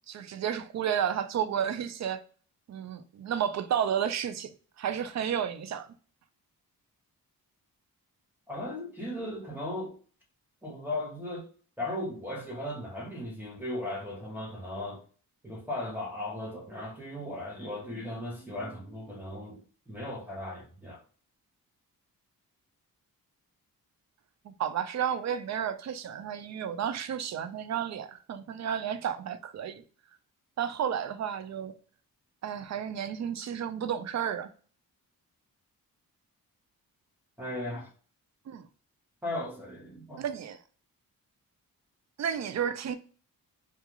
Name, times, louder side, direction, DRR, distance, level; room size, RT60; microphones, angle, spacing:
voice 1, 0.1-2.2 2.7-4.5 4.8-5.9 24.4-29.8 30.6-31.7 32.4-34.5 38.5-38.7 40.2-40.6 42.2-42.9, right 8 dB, 50° right, 0.4 m, -32 dB
voice 2, 8.5-10.0 10.6-11.5 11.8-15.0 15.4-21.0 37.4-37.9 39.2-40.2, left 1 dB, 5° right, 0.9 m, -37 dB
2.4 x 2.3 x 2.9 m
cardioid pair, 85°, 36 cm